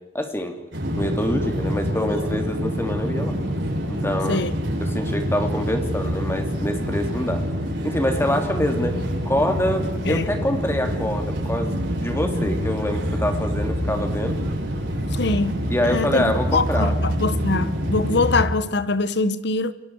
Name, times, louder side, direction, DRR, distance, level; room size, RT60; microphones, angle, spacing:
voice 1, 0.1-0.6 0.9-3.3 3.9-4.4 4.8-7.4 7.8-14.4 15.7-16.9, left 1 dB, 15° left, 2.8 m, -25 dB
sound 1, 0.7-18.4, equal, 90° right, 7.7 m, -26 dB
voice 2, 15.1-19.7, left 3 dB, 65° left, 1.2 m, -23 dB
29.5 x 23.0 x 4.8 m
head